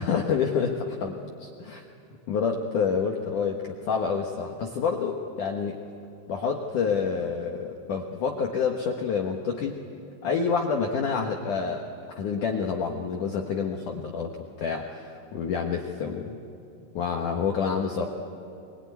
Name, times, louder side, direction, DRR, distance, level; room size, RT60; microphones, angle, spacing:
voice 1, 0.0-1.8 2.3-5.9 6.3-9.8 10.2-11.8 12.1-14.3 14.6-16.4 16.9-18.1, left 6 dB, 70° left, 2 dB, 2.0 m, -28 dB
25.0 x 22.5 x 9.5 m, 2.6 s
omnidirectional pair, 5.4 m